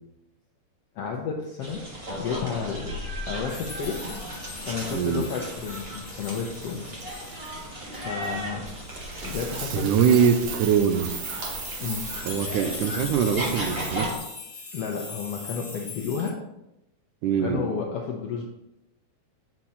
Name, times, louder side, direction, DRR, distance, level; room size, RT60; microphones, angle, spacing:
voice 1, 0.9-4.1 4.6-6.9 7.2-7.5 7.9-8.6 9.2-9.9 11.8-12.1 14.7-16.4 17.4-18.4, left 6 dB, 80° left, 0 dB, 1.4 m, -32 dB
sound 1, 1.6-14.2, equal, 50° right, 0.7 m, -36 dB
sound 2, 3.5-9.6 10.3-10.4 10.6-16.3, left 4 dB, 30° left, 0.8 m, -41 dB
voice 2, 4.9-5.3 9.7-11.2 12.2-14.1 17.2-17.6, right 7 dB, 85° right, 8 dB, 2.1 m, -23 dB
Coin (dropping), 8.9-12.4, right 6 dB, 65° right, 1.9 m, -36 dB
8.5 x 4.5 x 4.1 m, 0.88 s
omnidirectional pair, 3.6 m